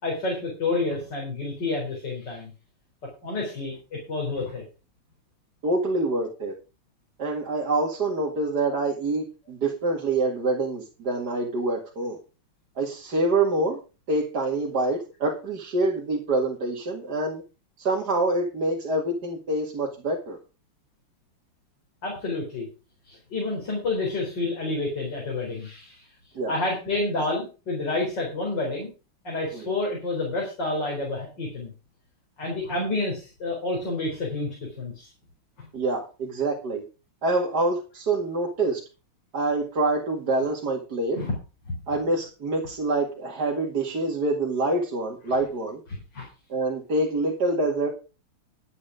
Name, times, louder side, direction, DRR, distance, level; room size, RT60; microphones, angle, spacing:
voice 1, 0.0-2.5 3.2-4.6 22.0-22.7 23.1-26.0 26.5-28.9 29.2-31.7 32.4-35.1 35.6-35.7 41.1-41.3 41.7-41.9 45.9-46.3, left 2 dB, 55° left, -2 dB, 4.8 m, -29 dB
voice 2, 5.6-6.5 7.2-12.2 12.8-13.8 14.1-17.4 17.8-20.4 26.3-26.6 29.5-29.7 35.7-36.8 37.2-38.8 39.3-41.2 41.9-45.8 46.5-47.9, right 2 dB, 50° right, -1 dB, 2.5 m, -26 dB
11.5 x 8.5 x 5.0 m, 0.32 s
omnidirectional pair, 2.3 m